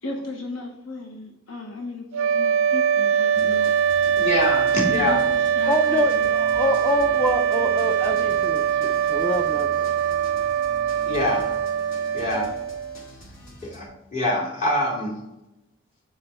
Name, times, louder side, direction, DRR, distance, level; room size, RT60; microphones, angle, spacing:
voice 1, 0.0-4.2 4.9-6.3 12.1-12.5, left 2 dB, 70° left, 2 dB, 0.8 m, -36 dB
sound 1, 2.1-13.1, right 8 dB, 80° right, 0.4 m, -22 dB
sound 2, 3.3-13.9, equal, 85° left, 2.1 m, -43 dB
voice 2, 4.2-5.2 11.1-11.5 12.1-12.5 13.6-15.1, left 1 dB, 40° left, -5 dB, 2.7 m, -24 dB
voice 3, 5.7-9.9, left 1 dB, 10° left, 2 dB, 0.4 m, -26 dB
7.5 x 4.9 x 4.2 m, 0.92 s
head